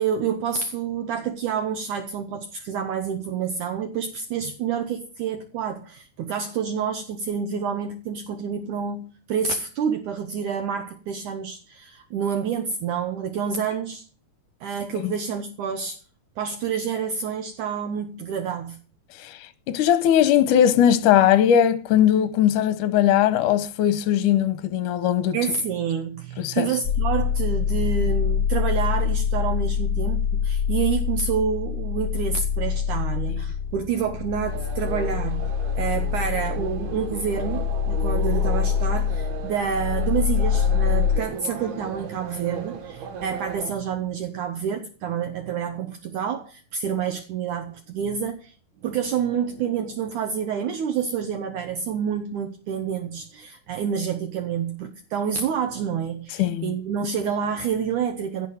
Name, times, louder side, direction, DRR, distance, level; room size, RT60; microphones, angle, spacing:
voice 1, 0.0-14.0 14.6-16.0 16.4-18.8 25.3-48.5 48.8-58.5, right 7 dB, 65° right, 2.3 m, -28 dB
voice 2, 19.2-25.4 26.4-26.7 56.4-56.7, left 10 dB, 70° left, 2.1 m, -19 dB
sound 1, 26.8-41.2, left 7 dB, 50° left, 1.2 m, -25 dB
sound 2, 34.5-43.7, right 6 dB, 85° right, 3.5 m, -36 dB
16.5 x 5.9 x 8.7 m
omnidirectional pair, 4.3 m